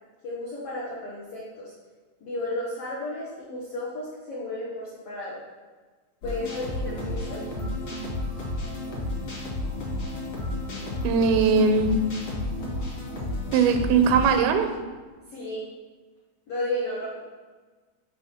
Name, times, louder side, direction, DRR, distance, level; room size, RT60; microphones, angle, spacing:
voice 1, 0.2-1.7 2.2-5.4 6.2-7.4 15.3-15.6 16.5-17.2, left 1 dB, 85° left, -6 dB, 1.3 m, -33 dB
sound 1, 6.2-14.4, left 1 dB, 55° left, 1.6 m, -32 dB
voice 2, 11.0-11.9 13.5-14.7, right 5 dB, 90° right, 7 dB, 2.4 m, -20 dB
5.7 x 3.4 x 5.6 m, 1.4 s
omnidirectional pair, 4.2 m